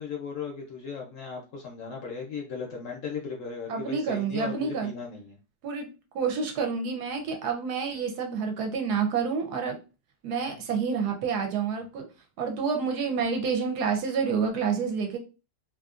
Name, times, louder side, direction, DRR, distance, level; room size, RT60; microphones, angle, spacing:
voice 1, 0.0-5.4 10.5-10.6 11.8-11.9, left 5 dB, 70° left, 0 dB, 0.7 m, -37 dB
voice 2, 3.7-4.9 5.6-5.9 6.1-9.8 10.2-12.1 12.4-15.2, right 5 dB, 70° right, 4 dB, 1.1 m, -28 dB
2.8 x 2.5 x 2.4 m, 0.31 s
omnidirectional pair, 1.9 m